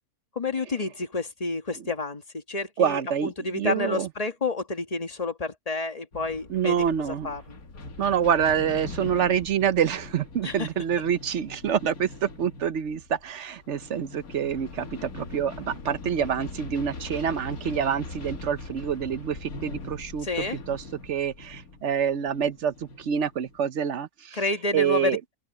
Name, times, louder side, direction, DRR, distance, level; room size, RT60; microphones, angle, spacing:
voice 1, 0.3-6.8 7.1-7.6 10.4-10.7 20.2-20.6 24.3-25.2, left 3 dB, 25° left, 1.6 m, -30 dB
voice 2, 2.8-4.1 6.5-7.3 8.0-20.3 20.7-24.4 24.7-25.2, right 8 dB, 55° right, 1.0 m, -27 dB
sound 1, 6.1-23.6, left 3 dB, 65° left, 2.4 m, -41 dB
open air
omnidirectional pair, 1.7 m